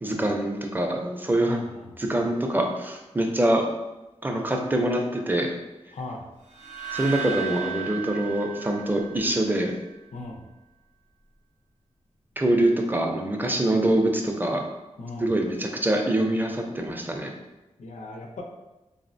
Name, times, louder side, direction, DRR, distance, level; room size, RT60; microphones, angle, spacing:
voice 1, 0.0-1.6 2.0-3.6 4.2-5.5 6.9-9.7 12.4-14.6 15.2-17.3, right 1 dB, 15° right, 2 dB, 0.4 m, -24 dB
voice 2, 1.5-2.0 5.9-6.3 10.1-10.4 15.0-15.3 17.8-18.4, left 2 dB, 85° left, 1 dB, 0.5 m, -38 dB
sound 1, 6.5-9.7, right 8 dB, 80° right, 0.6 m, -35 dB
3.8 x 2.0 x 2.5 m, 1.0 s
wide cardioid pair, 80°, 12 cm